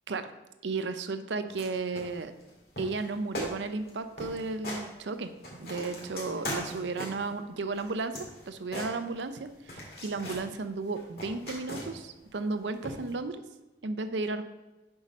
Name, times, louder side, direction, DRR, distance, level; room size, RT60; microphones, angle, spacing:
voice 1, 0.6-2.3 2.8-5.3 5.6-8.2 8.5-13.4 13.8-14.4, right 3 dB, 75° right, 10 dB, 0.6 m, -34 dB
sound 1, 1.5-1.7 1.9-2.5 2.8-3.1 3.3-3.5 3.8-3.9 4.2-4.8 5.2-7.3 7.7-9.4 9.7-10.5 10.9-12.1 12.8-13.1, equal, 55° left, 2.1 m, -39 dB
6.5 x 4.7 x 5.4 m, 1.1 s
head